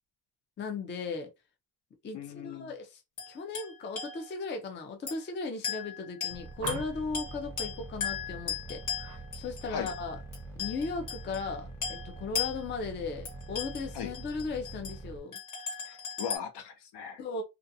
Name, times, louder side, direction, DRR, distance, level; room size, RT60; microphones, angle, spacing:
voice 1, 0.6-1.3 2.0-3.0 3.3-10.2 10.6-15.4 17.2-17.4, left 4 dB, 30° left, 0.4 m, -37 dB
voice 2, 2.1-2.7 9.7-9.9 13.9-14.1 15.9-17.2, left 7 dB, 70° left, 0.8 m, -38 dB
sound 1, 3.2-4.6 5.1-5.3 5.6-11.5 11.8-15.0 15.3-16.4, left 7 dB, 50° left, 1.1 m, -38 dB
sound 2, 6.3-15.2, right 2 dB, 5° left, 0.8 m, -44 dB
sound 3, 6.6-7.2 9.0-9.2 9.6-10.0, right 6 dB, 40° right, 0.5 m, -41 dB
2.4 x 2.3 x 2.6 m
wide cardioid pair, 155°, 41 cm